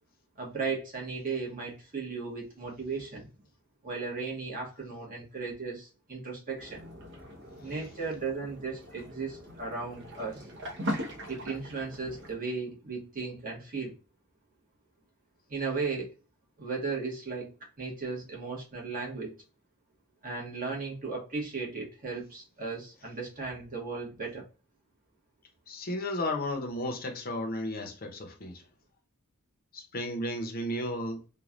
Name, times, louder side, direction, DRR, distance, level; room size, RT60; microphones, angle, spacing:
voice 1, 0.4-3.3 3.8-6.9 7.6-10.5 11.3-14.0 15.5-16.1 16.6-19.3 20.2-24.5, right 4 dB, 40° right, 1.1 m, -36 dB
sound 1, 6.6-12.4, equal, 60° right, 0.8 m, -40 dB
voice 2, 25.7-28.7 29.7-31.2, left 1 dB, 45° left, 0.7 m, -34 dB
3.1 x 2.2 x 2.4 m
head